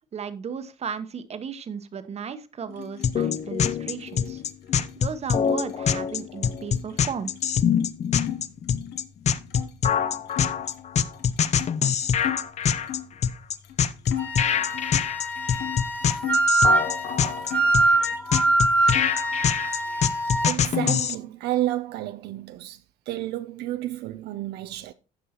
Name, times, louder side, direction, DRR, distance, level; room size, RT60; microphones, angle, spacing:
voice 1, 0.1-4.4 5.0-7.3, right 6 dB, 40° right, 1.0 m, -35 dB
sound 1, 2.7-8.4 8.7-9.7 10.3-13.2 13.6-13.8 14.0-16.5 16.9-18.5 18.9-20.0 20.2-21.1, left 12 dB, 75° left, 1.1 m, -38 dB
sound 2, 3.0-21.2, left 8 dB, 40° left, 0.6 m, -24 dB
Wind instrument woodwind instrument, 14.2-20.6, right 2 dB, 10° left, 1.4 m, -24 dB
voice 2, 20.4-22.8 23.1-24.9, right 14 dB, 80° right, 0.5 m, -30 dB
16.0 x 5.4 x 2.9 m
cardioid pair, 110°, 17 cm